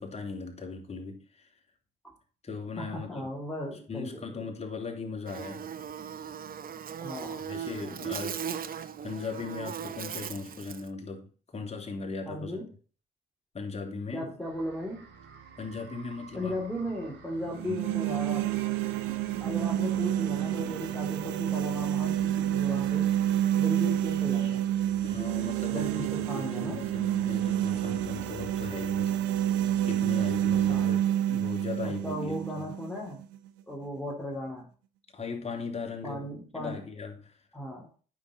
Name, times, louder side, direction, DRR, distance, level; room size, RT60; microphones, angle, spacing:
voice 1, 0.0-1.5 2.4-3.3 3.9-5.7 7.5-12.7 13.5-14.3 15.6-16.6 17.7-17.8 25.0-29.2 29.6-32.4 35.1-36.3 36.5-37.4, left 4 dB, 30° left, 3.1 m, -38 dB
voice 2, 2.8-4.5 7.0-7.4 12.2-12.7 14.1-15.1 16.3-18.6 19.1-23.1 23.5-24.6 25.7-26.8 30.7-30.9 31.8-33.2 33.7-34.7 36.0-36.8 37.5-37.9, equal, 5° left, 3.0 m, -36 dB
Buzz, 5.3-10.9, right 8 dB, 45° right, 0.8 m, -38 dB
sound 1, 14.4-30.8, right 7 dB, 65° right, 2.8 m, -50 dB
sound 2, 17.4-33.5, right 12 dB, 85° right, 0.9 m, -28 dB
8.6 x 6.2 x 5.2 m
supercardioid pair, 65°, 20 cm